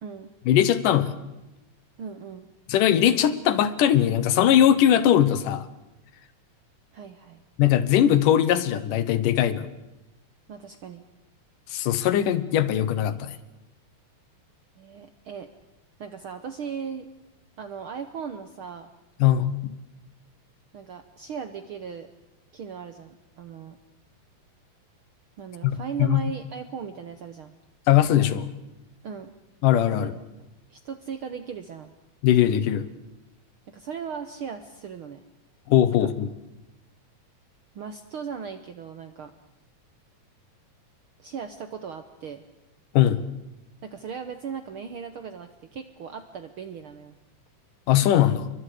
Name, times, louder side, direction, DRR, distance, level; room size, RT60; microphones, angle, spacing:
voice 1, 0.5-1.2 2.7-5.7 7.6-9.7 11.7-13.4 19.2-19.7 25.6-26.2 27.9-28.5 29.6-30.1 32.2-32.9 35.7-36.3 42.9-43.2 47.9-48.5, left 11 dB, 85° left, 13 dB, 2.7 m, -20 dB
voice 2, 2.0-2.5 6.9-7.4 10.5-11.0 14.8-15.5 16.0-17.1 17.6-18.9 20.7-22.1 22.5-23.8 25.4-27.5 29.0-29.3 30.0-30.1 30.7-31.9 33.7-35.2 36.0-36.1 37.7-39.3 41.2-42.4 43.8-47.1, right 6 dB, 70° right, 8 dB, 1.3 m, -37 dB
29.0 x 23.5 x 5.0 m, 0.97 s
omnidirectional pair, 3.7 m